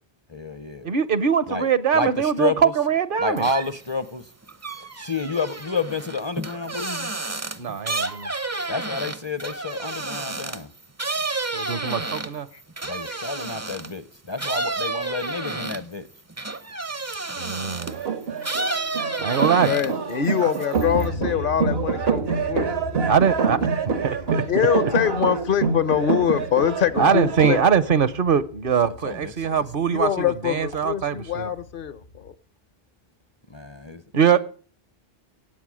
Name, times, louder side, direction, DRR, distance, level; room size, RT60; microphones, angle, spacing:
voice 1, 0.3-0.9 1.5-1.7 1.9-2.7 3.2-4.2 5.0-7.1 8.7-10.7 12.8-16.1 28.8-29.6 33.5-34.0, left 3 dB, 35° left, 15 dB, 0.6 m, -30 dB
voice 2, 0.8-3.5 7.6-8.3 11.5-12.5 17.4-18.0 19.2-19.7 20.4-20.5 23.0-23.8 24.0-24.4 24.8-24.9 27.0-31.5 34.1-34.4, right 7 dB, 60° right, 18 dB, 0.9 m, -22 dB
sound 1, 3.4-3.9 4.2-14.0 14.4-18.0 18.4-20.1 20.4-21.1, right 3 dB, 20° right, 0.5 m, -31 dB
sound 2, 17.9-27.6, right 5 dB, 80° right, 1.4 m, -26 dB
voice 3, 19.3-22.7 24.5-27.6 29.9-32.3, left 9 dB, 60° left, 17 dB, 0.9 m, -24 dB
sound 3, 20.7-32.3, left 1 dB, 75° left, 1.9 m, -39 dB
18.0 x 8.0 x 6.1 m, 0.43 s
omnidirectional pair, 1.0 m